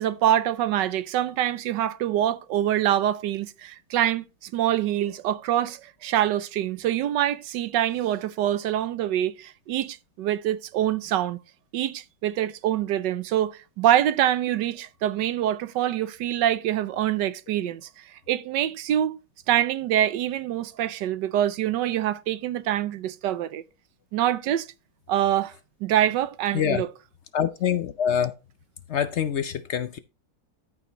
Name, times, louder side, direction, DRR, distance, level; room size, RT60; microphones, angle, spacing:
voice 1, 0.0-11.4 11.7-19.2 19.5-23.6 24.1-24.7 25.1-25.5 25.8-26.9, right 11 dB, 80° right, 1.3 m, -25 dB
voice 2, 27.3-28.3 28.9-30.0, left 8 dB, 70° left, 0.6 m, -25 dB
13.5 x 5.9 x 3.0 m
omnidirectional pair, 1.9 m